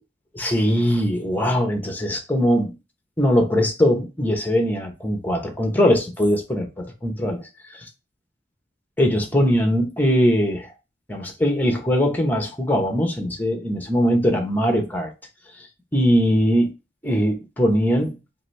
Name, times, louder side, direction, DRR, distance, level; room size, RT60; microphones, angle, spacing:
voice 1, 0.3-2.8 3.2-7.4 7.7-7.9 9.0-10.7 11.1-15.1 15.6-15.7 15.9-16.7 17.0-18.2, equal, 10° left, 0.9 m, -21 dB
4.6 x 2.7 x 3.3 m
head